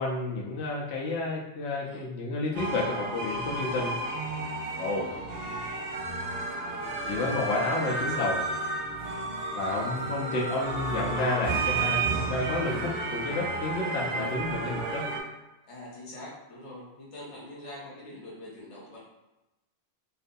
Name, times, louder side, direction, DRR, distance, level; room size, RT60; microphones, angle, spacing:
voice 1, 0.0-4.0 4.8-5.1 7.1-8.5 9.6-15.1, left 2 dB, 80° left, -3 dB, 0.9 m, -31 dB
voice 2, 1.8-2.1 4.9-5.2 6.6-7.1 7.4-8.4 14.1-14.8 15.7-19.0, left 1 dB, 35° left, -5 dB, 0.7 m, -45 dB
sound 1, 2.5-15.2, right 3 dB, 70° right, 0.8 m, -32 dB
2.6 x 2.3 x 2.5 m, 1.0 s
omnidirectional pair, 1.1 m